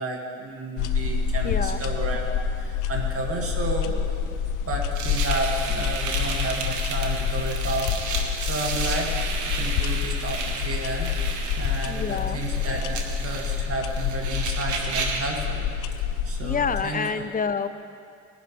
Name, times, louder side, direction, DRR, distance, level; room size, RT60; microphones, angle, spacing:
voice 1, 0.0-2.3 2.6-4.3 4.7-9.1 9.4-15.6 16.0-17.2, right 2 dB, 50° right, 0 dB, 2.3 m, -32 dB
sound 1, 0.8-16.8, left 7 dB, 85° left, 0.7 m, -28 dB
voice 2, 1.4-1.8 11.8-12.4 16.4-17.7, left 6 dB, 30° left, 11 dB, 0.6 m, -28 dB
sound 2, 4.9-15.3, right 4 dB, 75° right, 1.6 m, -33 dB
19.5 x 11.0 x 3.4 m, 2.4 s
cardioid pair, 90°, 30 cm